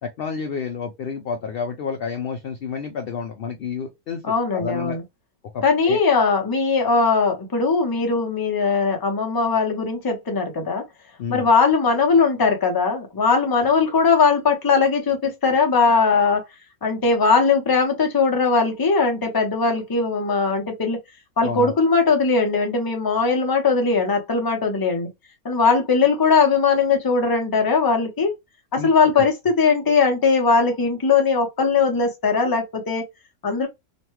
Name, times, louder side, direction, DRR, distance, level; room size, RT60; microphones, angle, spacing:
voice 1, 0.0-4.2 4.5-5.0 5.5-6.0 11.2-11.5 21.4-21.7 28.8-29.2, left 6 dB, 70° left, 0.5 m, -30 dB
voice 2, 4.2-5.0 5.6-10.8 11.3-16.4 16.8-21.0 21.4-25.1 25.4-28.3 28.7-33.0 33.4-33.7, left 4 dB, 25° left, 0.5 m, -19 dB
3.1 x 2.2 x 3.0 m
omnidirectional pair, 1.5 m